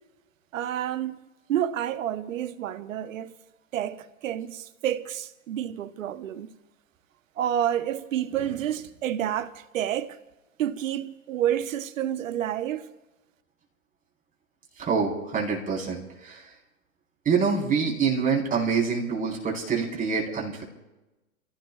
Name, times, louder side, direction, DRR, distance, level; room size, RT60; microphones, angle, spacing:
voice 1, 0.5-1.2 1.5-3.4 3.7-6.5 7.4-10.2 10.6-12.9, right 11 dB, 65° right, 1.0 m, -29 dB
voice 2, 14.8-16.4 17.2-20.6, right 5 dB, 20° right, 4.3 m, -26 dB
29.0 x 16.0 x 2.4 m
hypercardioid pair, 110°, 43 cm